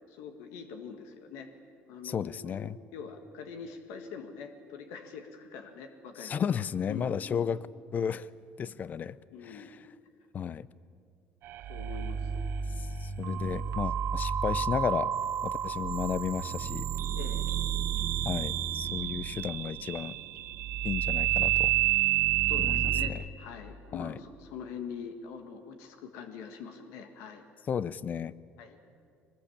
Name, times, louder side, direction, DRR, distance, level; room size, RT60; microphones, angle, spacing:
voice 1, 0.0-1.5 1.9-6.4 6.9-7.5 9.3-9.7 11.7-12.4 13.3-13.6 17.1-17.4 22.5-27.4 28.6-28.8, left 6 dB, 85° left, 6 dB, 1.8 m, -44 dB
voice 2, 2.0-2.8 6.2-7.6 7.9-8.3 8.6-9.2 9.4-9.8 10.3-10.7 12.8-15.2 15.4-16.9 18.3-20.2 20.8-21.7 22.6-23.2 23.9-24.2 27.7-28.3, left 7 dB, 40° left, 19 dB, 0.6 m, -33 dB
sound 1, 11.4-23.1, right 11 dB, 65° right, 1.4 m, -30 dB
22.0 x 20.0 x 8.7 m, 2.3 s
cardioid pair, 115°, 4 cm